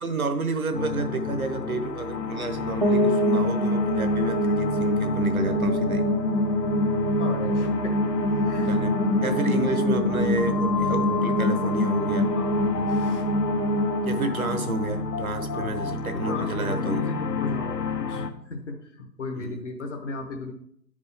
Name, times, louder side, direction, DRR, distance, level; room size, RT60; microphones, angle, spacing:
voice 1, 0.0-6.1 8.7-9.0 9.2-12.3 14.0-17.0 19.4-19.6, right 3 dB, 55° right, 7 dB, 1.1 m, -30 dB
sound 1, 0.7-18.3, left 4 dB, 80° left, 0.9 m, -30 dB
sound 2, 2.8-15.7, equal, 35° right, 0.7 m, -25 dB
voice 2, 7.1-8.0 8.3-8.7 12.3-13.3 15.5-15.8 16.1-20.5, left 3 dB, 45° left, 2 dB, 1.0 m, -36 dB
10.5 x 5.3 x 3.4 m, 0.69 s
hypercardioid pair, 170°, 49 cm